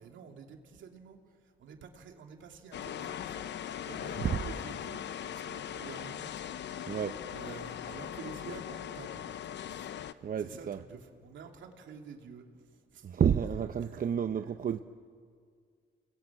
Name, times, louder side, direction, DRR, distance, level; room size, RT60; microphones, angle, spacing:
voice 1, 0.0-3.5 3.8-6.3 6.6-7.0 7.3-9.4 9.7-13.2 13.8-14.0 14.4-14.5, right 6 dB, 70° right, 2.9 m, -49 dB
sound 1, 2.7-10.1, left 9 dB, 65° left, 0.9 m, -40 dB
voice 2, 6.8-7.2 10.2-10.8 13.0-14.8, right 8 dB, 45° right, 0.8 m, -30 dB
30.0 x 20.5 x 8.8 m
cardioid pair, 90°, 20 cm